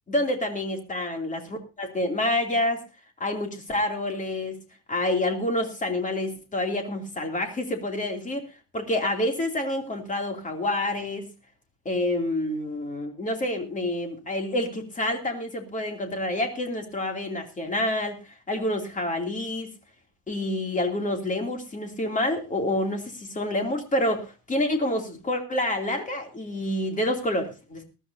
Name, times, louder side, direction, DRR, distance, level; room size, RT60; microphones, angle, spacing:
voice 1, 0.1-2.8 3.2-4.6 4.9-8.4 8.7-11.3 11.8-18.2 18.5-19.7 20.3-27.8, left 1 dB, 20° left, 4 dB, 2.8 m, -28 dB
20.0 x 13.0 x 2.7 m, 0.31 s
cardioid pair, 160°, 42 cm